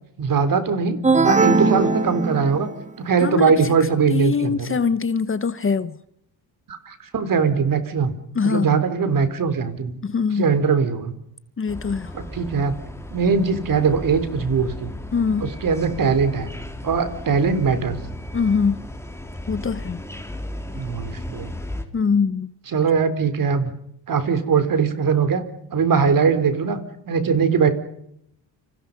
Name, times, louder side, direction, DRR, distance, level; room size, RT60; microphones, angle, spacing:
voice 1, 0.2-2.7 3.0-4.8 6.7-10.0 10.4-11.1 12.1-12.7 13.1-14.9 15.4-16.5 16.8-18.0 20.8-21.5 22.7-23.7 24.1-25.4 25.7-27.7, right 5 dB, 45° right, 3.9 m, -21 dB
sound 1, 1.0-2.9, right 4 dB, 15° right, 1.9 m, -19 dB
voice 2, 3.2-3.7 4.1-6.0 8.3-8.8 10.0-10.5 11.6-12.1 15.1-15.5 18.3-18.8 19.5-20.0 21.9-22.5, left 5 dB, 30° left, 1.1 m, -23 dB
sound 2, 11.7-21.8, left 1 dB, 5° left, 3.4 m, -35 dB
29.5 x 27.0 x 5.4 m
cardioid pair, 120°, 44 cm